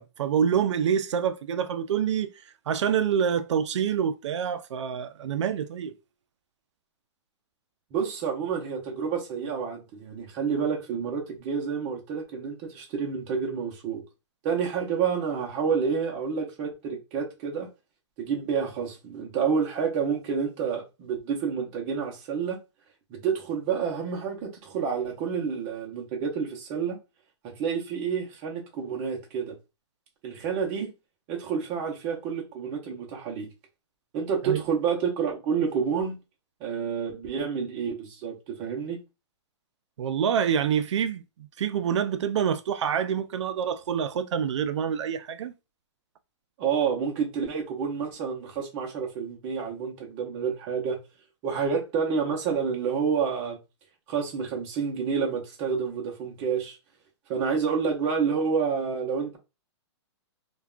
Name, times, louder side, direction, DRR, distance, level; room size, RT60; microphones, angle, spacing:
voice 1, 0.0-2.3 2.7-5.9 34.4-34.6 40.0-41.2 41.6-45.5, right 8 dB, 80° right, 0.4 m, -26 dB
voice 2, 7.9-14.0 14.4-17.7 18.2-22.6 23.1-27.0 27.6-29.5 30.2-30.9 31.3-33.5 34.1-36.2 36.6-39.0 46.6-51.0 51.4-53.6 54.1-56.8 57.3-59.4, right 6 dB, 25° right, 0.6 m, -29 dB
3.3 x 2.2 x 2.3 m
hypercardioid pair, 165°, 15 cm